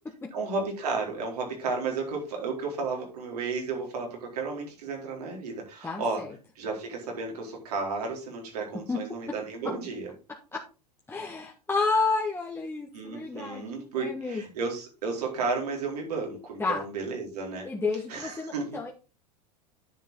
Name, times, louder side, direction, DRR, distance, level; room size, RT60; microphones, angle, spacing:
voice 1, 0.3-6.2 6.6-10.1 12.9-17.7 18.1-18.8, right 4 dB, 75° right, 0 dB, 4.3 m, -33 dB
voice 2, 5.8-6.3 8.9-9.0 10.5-10.6 11.1-14.4 16.6-16.8 17.6-18.9, left 4 dB, 10° left, -1 dB, 1.6 m, -30 dB
10.0 x 6.9 x 3.9 m, 0.31 s
hypercardioid pair, 90°, 20 cm